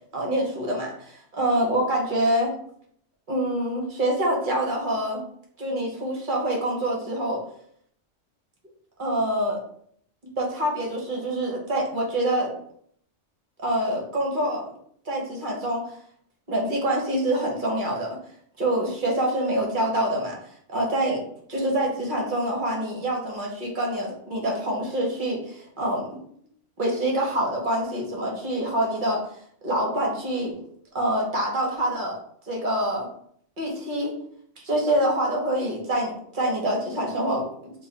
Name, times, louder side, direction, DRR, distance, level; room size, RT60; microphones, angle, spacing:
voice 1, 0.1-2.5 3.3-5.2 5.6-7.4 9.0-9.6 10.4-12.5 13.6-14.7 15.0-15.9 16.5-18.2 18.6-20.4 20.7-21.2 21.5-26.2 26.8-29.2 29.6-30.5 30.9-32.2 32.5-33.1 33.6-34.1 34.6-37.7, right 1 dB, 45° right, -1 dB, 0.9 m, -26 dB
3.1 x 2.4 x 3.9 m, 0.64 s
omnidirectional pair, 1.3 m